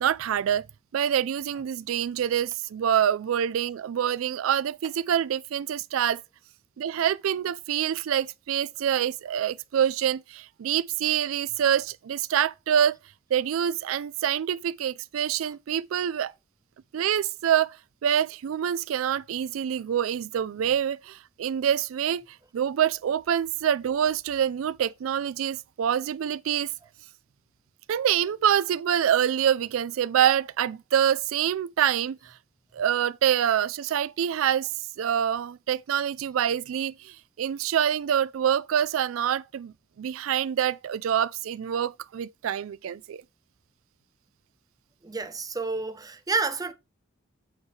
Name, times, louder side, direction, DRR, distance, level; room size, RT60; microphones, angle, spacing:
voice 1, 0.0-0.7 0.9-6.2 6.8-13.0 13.3-16.3 16.9-17.8 18.0-22.2 22.5-26.7 27.9-32.3 32.7-34.7 35.0-43.2, right 9 dB, 85° right, 0.4 m, -26 dB
voice 2, 45.0-46.7, right 3 dB, 20° right, 0.7 m, -29 dB
8.4 x 4.8 x 4.5 m
head